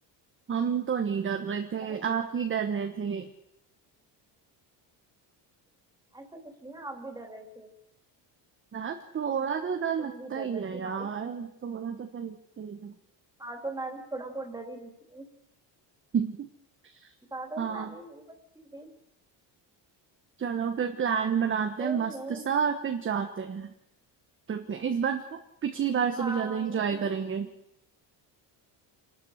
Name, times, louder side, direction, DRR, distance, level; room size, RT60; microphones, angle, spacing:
voice 1, 0.5-3.3 8.7-12.9 16.1-16.5 16.8-17.1 17.6-17.9 20.4-23.7 24.5-27.5, right 7 dB, 25° right, 5 dB, 1.3 m, -30 dB
voice 2, 6.1-7.7 10.0-11.1 13.4-15.3 17.3-18.2 18.6-18.9 21.8-22.5 26.1-27.1, right 2 dB, 10° right, 3 dB, 3.6 m, -40 dB
27.5 x 12.5 x 8.1 m, 0.79 s
cardioid pair, 170°, 44 cm